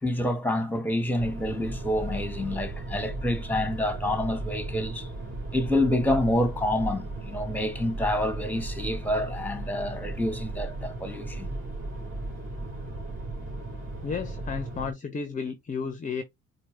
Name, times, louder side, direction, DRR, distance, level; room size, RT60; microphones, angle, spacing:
voice 1, 0.0-5.1 5.5-11.5, left 1 dB, 5° left, 1.2 m, -28 dB
sound 1, 1.2-14.9, right 2 dB, 35° right, 2.4 m, -36 dB
voice 2, 14.0-16.2, left 5 dB, 20° left, 0.7 m, -33 dB
4.5 x 2.3 x 3.2 m
hypercardioid pair, 70°, 34 cm